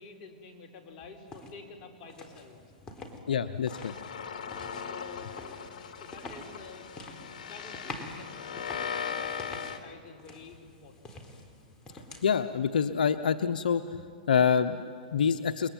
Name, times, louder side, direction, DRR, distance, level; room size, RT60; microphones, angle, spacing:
voice 1, 0.0-3.0 4.9-8.4 8.8-11.2, left 4 dB, 40° left, 2 dB, 4.4 m, -50 dB
sound 1, 1.3-1.5 2.1-3.2 3.6-9.8 10.2-12.3, left 2 dB, 20° left, 4.0 m, -47 dB
voice 2, 3.3-3.9 12.2-15.7, left 7 dB, 85° left, 10 dB, 0.9 m, -27 dB
sound 2, 3.7-9.8, left 7 dB, 65° left, 2.8 m, -38 dB
30.0 x 22.0 x 9.2 m, 2.3 s
hypercardioid pair, 130°, 5 cm